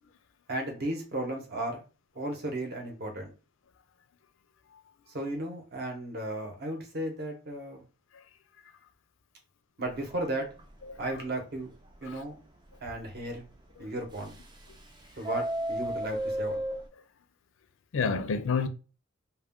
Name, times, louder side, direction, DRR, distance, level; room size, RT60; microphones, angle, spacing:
voice 1, 0.5-1.8 2.1-3.3 5.1-7.8 9.8-10.5 11.0-11.7 12.0-12.4 12.8-13.4 13.8-14.3 15.2-16.6, right 1 dB, 50° right, 0.8 m, -35 dB
Subway metro underground, 10.1-10.2 10.6-10.7 11.0-11.1 11.6-11.7 14.1-14.8 15.1-16.8, right 1 dB, 20° right, 0.3 m, -33 dB
voice 2, 10.8-11.2 12.0-12.2 13.8-13.9 14.7-14.8 15.8-15.9 16.9-17.1 17.9-18.7, left 5 dB, 65° left, 0.4 m, -32 dB
2.2 x 2.2 x 3.5 m
head